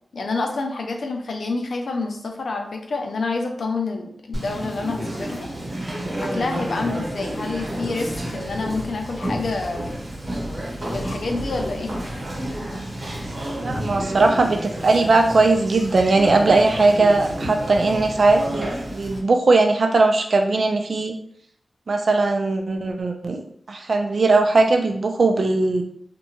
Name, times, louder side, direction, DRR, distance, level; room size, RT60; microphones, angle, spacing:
voice 1, 0.1-5.5 6.2-10.0 10.9-12.0, left 3 dB, 90° left, 3 dB, 0.4 m, -28 dB
Conversation, 4.3-19.2, right 1 dB, 45° right, 0.9 m, -30 dB
voice 2, 13.6-21.2 21.9-25.8, right 3 dB, 70° right, 4 dB, 0.4 m, -19 dB
2.7 x 2.2 x 2.8 m, 0.65 s
wide cardioid pair, 65°, 0 cm